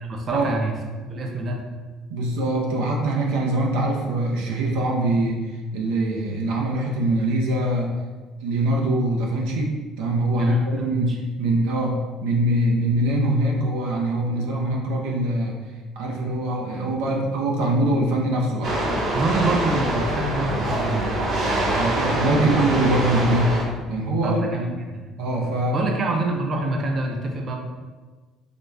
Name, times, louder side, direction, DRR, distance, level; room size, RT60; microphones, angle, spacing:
voice 1, 0.0-0.7 1.1-1.6 10.4-10.6 11.1-11.2 19.1-21.3 24.2-25.0 25.7-27.6, right 2 dB, 45° right, 1 dB, 0.6 m, -26 dB
voice 2, 2.1-5.4 5.7-7.9 8.4-15.5 16.0-18.7 21.7-23.5 23.9-24.7 25.2-25.8, right 1 dB, 90° right, -1 dB, 0.5 m, -23 dB
sound 1, 18.6-23.6, right 1 dB, 65° right, 0.9 m, -24 dB
3.9 x 2.2 x 3.2 m, 1.3 s
cardioid pair, 100°, 0 cm